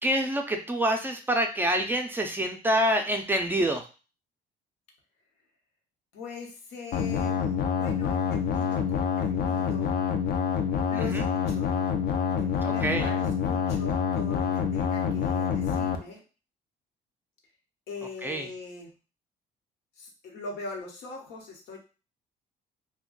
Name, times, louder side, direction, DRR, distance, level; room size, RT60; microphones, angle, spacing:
voice 1, 0.0-3.9 10.9-11.3 12.6-13.1 18.2-18.5, right 1 dB, 10° right, 4 dB, 0.4 m, -27 dB
voice 2, 6.1-9.9 10.9-11.9 12.4-16.2 17.9-18.9 20.0-21.8, left 3 dB, 80° left, 0 dB, 1.0 m, -41 dB
sound 1, 6.9-16.0, left 6 dB, 60° left, 0.5 m, -27 dB
2.4 x 2.2 x 3.8 m, 0.34 s
cardioid pair, 110°, 17 cm